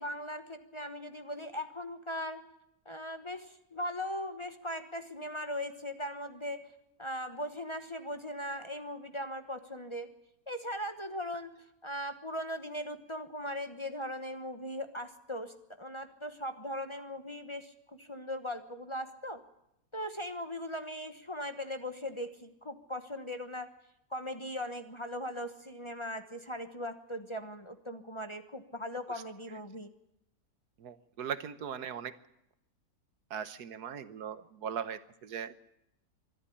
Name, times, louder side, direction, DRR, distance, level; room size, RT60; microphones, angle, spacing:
voice 1, 0.0-2.4 2.8-6.7 7.0-10.1 10.5-19.4 19.9-23.7 24.1-29.9, equal, 20° left, 7 dB, 1.1 m, -39 dB
voice 2, 30.8-32.1 33.3-35.5, right 8 dB, 80° right, 13 dB, 1.6 m, -39 dB
24.5 x 12.0 x 9.9 m, 0.83 s
omnidirectional pair, 1.6 m